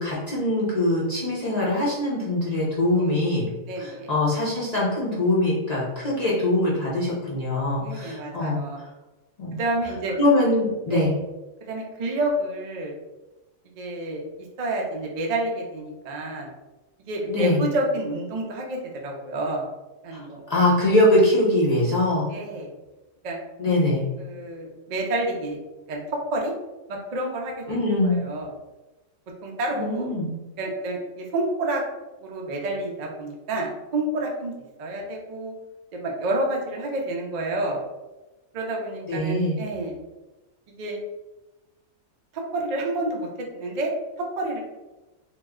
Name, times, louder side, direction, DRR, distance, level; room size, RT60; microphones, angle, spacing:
voice 1, 0.0-3.5 3.8-8.6 9.4-9.6 10.2-11.1 17.3-17.6 20.1-20.2 20.5-22.3 23.6-24.0 27.7-28.2 29.7-30.3 39.1-39.6, left 1 dB, 40° left, -7 dB, 0.6 m, -22 dB
voice 2, 3.0-3.4 3.6-4.1 7.8-8.8 9.5-10.2 10.9-11.1 11.7-12.9 13.8-14.2 14.6-16.5 17.1-19.7 20.0-20.4 22.3-22.7 23.2-23.4 24.2-25.6 25.9-26.0 26.3-26.5 26.9-28.5 29.4-30.1 30.6-31.8 32.2-34.5 34.8-35.5 35.9-37.8 38.5-40.0 40.8-41.0 42.3-43.3 43.5-43.9 44.4-44.6, right 1 dB, 75° right, 0 dB, 0.3 m, -29 dB
3.0 x 2.0 x 3.5 m, 1.1 s
omnidirectional pair, 1.4 m